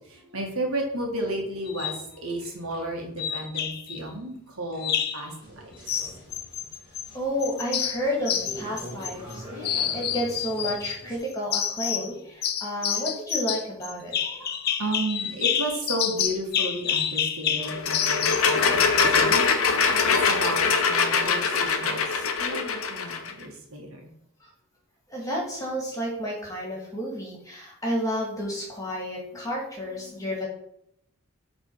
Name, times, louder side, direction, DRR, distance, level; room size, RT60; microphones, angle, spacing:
voice 1, 0.1-5.3 12.9-13.0 14.2-19.4 20.0-24.0 30.0-30.3, right 1 dB, 75° right, 1 dB, 1.6 m, -33 dB
sound 1, 1.7-2.0 3.2-4.0 4.8-5.3 5.9-7.1 7.4-9.4 9.6-11.0 11.5-12.1 12.4-18.5, left 9 dB, 45° left, 0.5 m, -28 dB
sound 2, 5.4-11.2, equal, 25° right, 2.5 m, -43 dB
voice 2, 7.1-14.2 25.1-30.5, equal, 15° left, -3 dB, 1.9 m, -31 dB
sound 3, 17.6-23.3, left 5 dB, 70° left, 0.8 m, -23 dB
7.9 x 3.4 x 4.6 m, 0.74 s
head